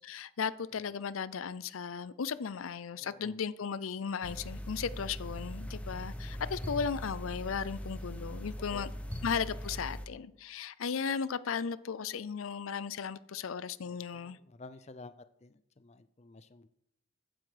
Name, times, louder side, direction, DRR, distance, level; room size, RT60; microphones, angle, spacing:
voice 1, 0.0-8.9 9.2-14.4, left 6 dB, 80° left, 17 dB, 0.5 m, -36 dB
voice 2, 3.0-3.4 6.7-6.8 8.6-8.9 13.8-15.1 15.4-16.7, left 3 dB, 30° left, 13 dB, 0.5 m, -52 dB
sound 1, 4.2-10.1, equal, 5° left, 0.9 m, -40 dB
15.0 x 8.0 x 5.0 m, 0.76 s
head